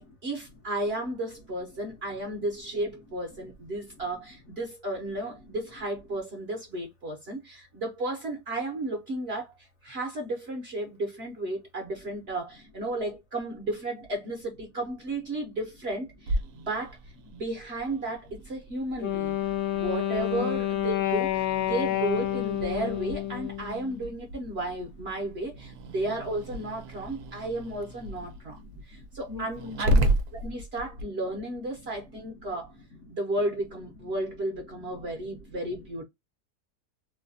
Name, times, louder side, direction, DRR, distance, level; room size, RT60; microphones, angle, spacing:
voice 1, 0.0-17.0 17.3-19.4 19.7-32.7 33.1-36.0, right 1 dB, 55° right, 0.8 m, -33 dB
Growling, 16.3-31.0, right 1 dB, 70° right, 1.1 m, -34 dB
Wind instrument woodwind instrument, 19.0-24.0, left 13 dB, 90° left, 0.6 m, -29 dB
voice 2, 20.4-20.7 24.2-24.6 25.6-25.7 27.1-27.3 27.9-30.0 30.4-30.6 31.8-32.1 32.3-32.5 32.7-33.1 34.0-34.1 35.0-35.5, left 2 dB, 55° left, 1.0 m, -47 dB
3.2 x 2.2 x 2.5 m
omnidirectional pair, 1.7 m